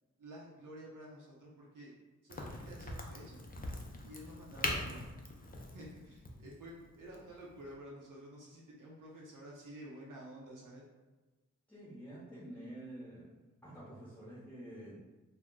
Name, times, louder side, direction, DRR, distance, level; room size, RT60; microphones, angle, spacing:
voice 1, 0.2-1.9 2.2-3.4 4.0-5.1 5.7-10.8, right 1 dB, 75° right, -4 dB, 0.7 m, -51 dB
Crack, 2.3-7.7, left 2 dB, 30° left, 0.5 m, -42 dB
voice 2, 11.7-13.3 13.6-15.0, right 1 dB, 5° left, -9 dB, 0.8 m, -48 dB
2.2 x 2.1 x 3.7 m, 1.1 s
cardioid pair, 50°, 32 cm